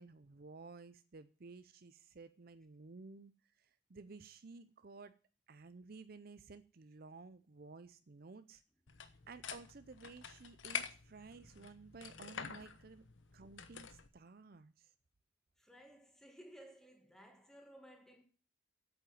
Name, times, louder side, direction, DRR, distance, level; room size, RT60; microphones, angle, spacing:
voice 1, 0.0-3.3 3.6-5.1 5.5-8.6 9.3-13.0 13.3-14.9, right 4 dB, 50° right, 0.6 m, -54 dB
sound 1, 8.9-14.1, left 7 dB, 80° left, 1.1 m, -47 dB
voice 2, 15.6-18.2, equal, 5° left, 2.1 m, -58 dB
8.7 x 8.0 x 9.2 m
head